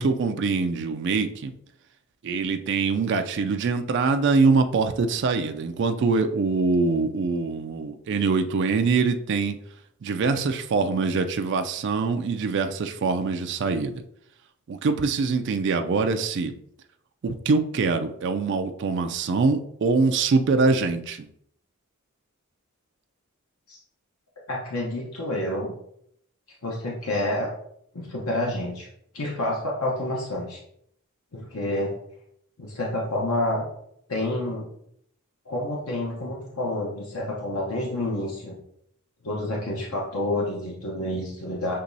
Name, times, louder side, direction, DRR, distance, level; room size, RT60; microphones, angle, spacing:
voice 1, 0.0-1.5 2.2-9.6 10.0-14.0 14.7-16.5 17.2-21.3, right 4 dB, 55° right, 7 dB, 0.4 m, -24 dB
voice 2, 24.5-25.7 26.6-27.5 27.9-28.9 29.1-30.6 31.3-31.9 32.6-33.7 34.1-34.7 35.5-38.6 39.2-41.8, left 1 dB, 90° left, -3 dB, 0.9 m, -28 dB
6.6 x 2.9 x 2.7 m, 0.72 s
head